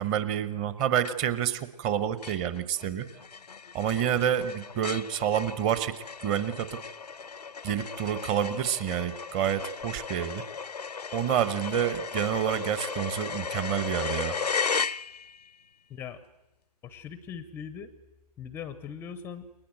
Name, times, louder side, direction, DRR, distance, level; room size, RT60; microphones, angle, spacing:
voice 1, 0.0-3.1 3.7-6.0 6.2-6.8 7.6-10.4 11.1-14.4, right 10 dB, 20° right, 14 dB, 1.3 m, -28 dB
sound 1, 1.0-1.5 1.8-1.9 2.2-15.5, left 5 dB, 75° left, 0.8 m, -35 dB
voice 2, 15.9-16.2 16.8-17.9 18.4-19.5, left 7 dB, 10° left, 13 dB, 0.8 m, -40 dB
28.5 x 23.0 x 7.8 m, 0.99 s
figure-of-eight pair, 140°, 21 cm